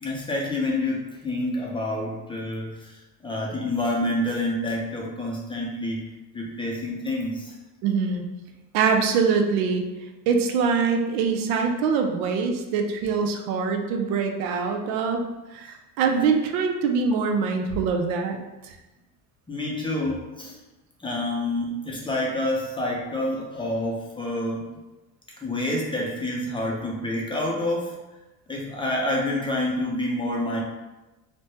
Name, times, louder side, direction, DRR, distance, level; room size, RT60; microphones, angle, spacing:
voice 1, 0.0-3.0 3.2-6.0 6.3-7.5 19.5-20.6 21.0-24.6 25.4-28.0 28.5-30.6, left 1 dB, 15° left, -3 dB, 0.4 m, -28 dB
voice 2, 7.8-8.2 8.7-9.8 10.3-15.2 15.5-18.4 18.6-18.7, right 5 dB, 85° right, 4 dB, 0.6 m, -23 dB
3.2 x 2.1 x 2.8 m, 1.1 s
supercardioid pair, 110°, 41 cm